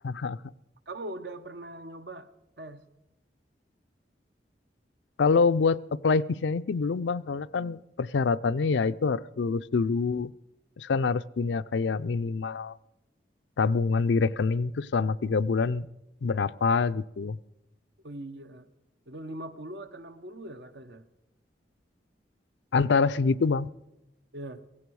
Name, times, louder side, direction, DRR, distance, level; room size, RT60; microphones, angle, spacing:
voice 1, 0.0-0.4 5.2-10.3 10.8-12.7 13.6-15.9 16.2-17.4 22.7-23.7, left 4 dB, 80° left, 15 dB, 0.4 m, -26 dB
voice 2, 0.9-2.3 2.6-2.8 18.0-18.7 19.1-21.0 24.3-24.6, right 1 dB, 70° right, 10 dB, 1.0 m, -41 dB
16.5 x 16.0 x 4.7 m, 0.91 s
head